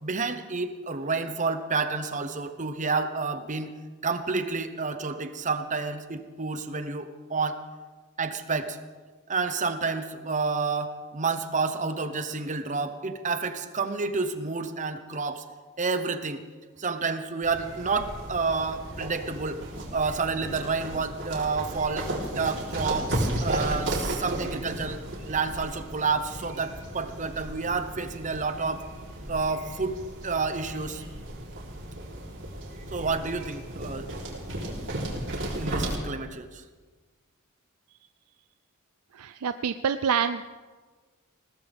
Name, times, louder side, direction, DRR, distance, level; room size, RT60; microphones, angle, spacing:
voice 1, 0.0-3.7 4.0-7.6 8.2-8.8 9.3-15.4 15.8-16.4 16.8-19.6 19.9-28.8 29.3-30.0 30.2-31.0 32.9-34.1 35.6-36.6, right 4 dB, 35° right, 9 dB, 1.0 m, -29 dB
sound 1, 17.4-36.0, right 1 dB, 60° right, 3.8 m, -34 dB
voice 2, 39.1-40.4, right 7 dB, 85° right, 11 dB, 0.5 m, -27 dB
20.5 x 18.5 x 3.6 m, 1.4 s
head